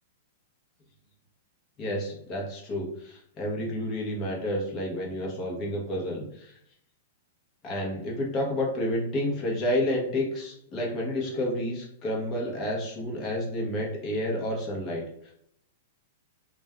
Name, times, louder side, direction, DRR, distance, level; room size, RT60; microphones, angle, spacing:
voice 1, 1.8-6.5 7.6-15.0, left 1 dB, 30° left, -3 dB, 1.0 m, -30 dB
2.5 x 2.3 x 3.5 m, 0.73 s
hypercardioid pair, 120°, 0 cm